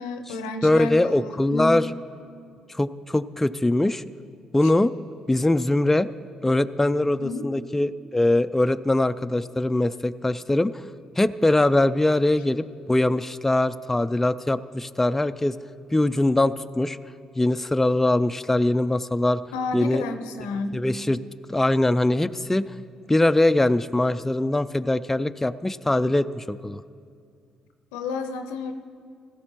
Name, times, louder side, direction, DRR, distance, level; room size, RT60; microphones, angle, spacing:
voice 1, 0.0-1.8 7.0-7.5 19.5-20.8 27.9-28.7, left 4 dB, 85° left, 8 dB, 0.6 m, -31 dB
voice 2, 0.6-1.9 2.7-4.0 4.5-4.9 5.3-6.1 6.4-10.7 11.2-15.5 15.9-17.0 17.4-19.4 19.7-20.0 20.7-21.2 21.5-22.7 23.1-26.8, left 1 dB, 10° left, 12 dB, 0.3 m, -22 dB
16.5 x 13.5 x 3.0 m, 2.3 s
hypercardioid pair, 50°, 2 cm